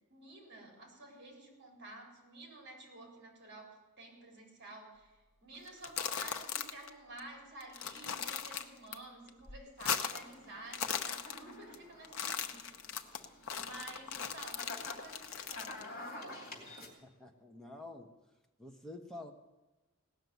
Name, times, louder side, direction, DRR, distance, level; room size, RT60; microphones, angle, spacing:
voice 1, 0.0-16.5, right 2 dB, 50° right, 0 dB, 3.9 m, -52 dB
sound 1, 5.7-6.9 7.2-7.3 7.6-9.0 9.3-10.3 10.6-11.8 12.0-15.8, left 7 dB, 65° left, 0.8 m, -38 dB
sound 2, 10.0-16.9, left 2 dB, 45° left, 2.9 m, -50 dB
voice 2, 17.0-18.1 18.6-19.3, left 2 dB, ahead, 2 dB, 1.0 m, -48 dB
17.0 x 6.6 x 9.4 m, 1.1 s
head